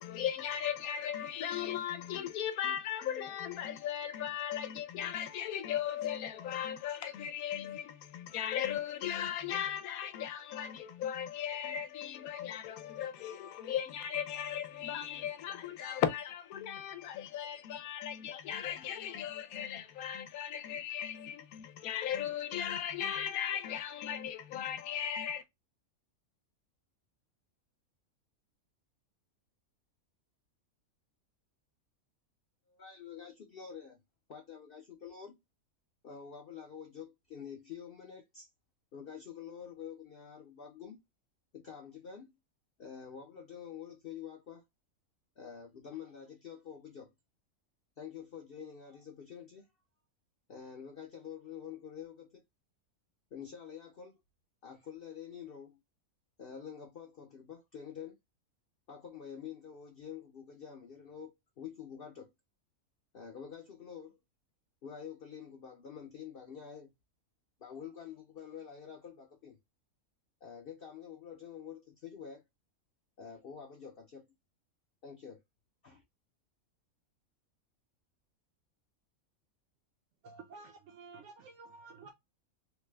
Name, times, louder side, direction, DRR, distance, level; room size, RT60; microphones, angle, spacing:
voice 1, 0.0-25.4, left 9 dB, 85° left, 1.0 m, -37 dB
voice 2, 32.7-34.0 34.3-35.4 36.0-38.5 38.9-41.0 41.5-42.3 42.8-44.6 45.4-47.1 48.0-49.6 50.5-52.4 53.3-54.2 54.6-55.8 56.4-58.2 58.9-62.3 63.1-64.2 64.8-66.9 67.6-69.6 70.4-72.4 73.2-74.2 75.0-75.4 75.8-76.0, left 7 dB, 50° left, 0.7 m, -47 dB
voice 3, 80.2-82.1, right 4 dB, 65° right, 0.9 m, -51 dB
3.2 x 2.2 x 3.2 m
omnidirectional pair, 1.5 m